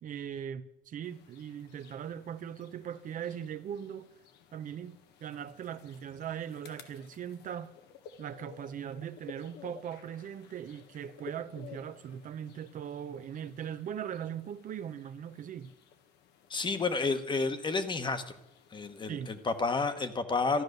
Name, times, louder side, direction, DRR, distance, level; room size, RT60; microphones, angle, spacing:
voice 1, 0.0-4.1 4.5-7.7 8.2-15.7 19.1-19.3, right 9 dB, 50° right, 0.7 m, -40 dB
sound 1, 1.0-19.8, left 7 dB, 85° left, 1.4 m, -55 dB
voice 2, 16.5-18.4 18.7-20.6, left 4 dB, 25° left, 1.2 m, -30 dB
13.5 x 10.5 x 6.6 m
cardioid pair, 110°, 17 cm